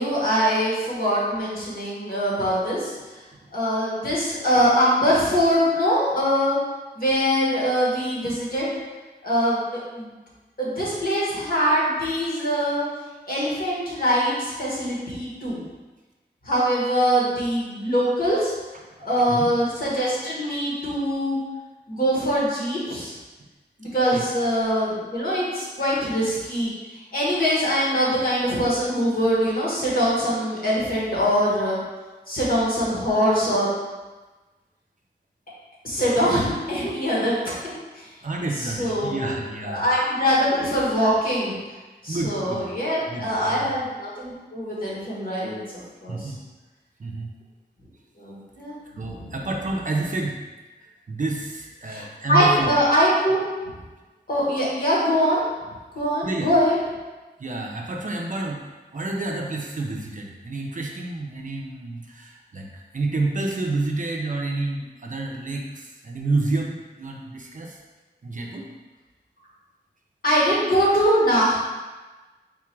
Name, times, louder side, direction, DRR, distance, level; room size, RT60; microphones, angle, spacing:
voice 1, 0.0-3.2 3.5-6.6 6.9-8.7 9.2-10.1 10.6-12.8 13.3-15.6 16.4-18.5 19.0-21.4 21.9-23.1 23.8-31.8 32.3-33.7 35.8-38.1 38.6-39.3 39.6-41.6 42.0-45.6 46.0-46.3 48.2-48.8 49.1-49.2 51.9-52.0 52.3-53.4 54.3-55.4 55.9-56.8 70.2-71.6, equal, 50° left, -7 dB, 1.5 m, -23 dB
voice 2, 18.9-19.5 24.1-24.4 24.7-24.8 38.2-39.8 42.1-42.6 43.1-43.7 46.1-46.4 47.0-47.3 48.8-50.4 50.8-52.7 56.2-56.5 57.4-58.6 58.9-67.8 68.2-68.7, right 2 dB, 45° right, 0 dB, 0.5 m, -29 dB
3.7 x 2.4 x 4.5 m, 1.2 s
wide cardioid pair, 95°, 19 cm